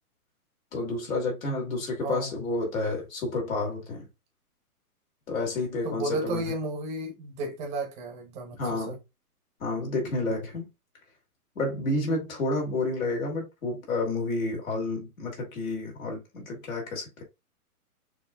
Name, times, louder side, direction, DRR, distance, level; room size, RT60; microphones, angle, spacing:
voice 1, 0.7-4.1 5.3-6.5 8.6-9.0 9.6-10.7 11.5-17.2, left 2 dB, 60° left, 2.6 m, -30 dB
voice 2, 2.0-2.4 5.8-9.0, right 2 dB, 15° right, 0.8 m, -33 dB
6.6 x 2.8 x 2.2 m
hypercardioid pair, 145°, 45 cm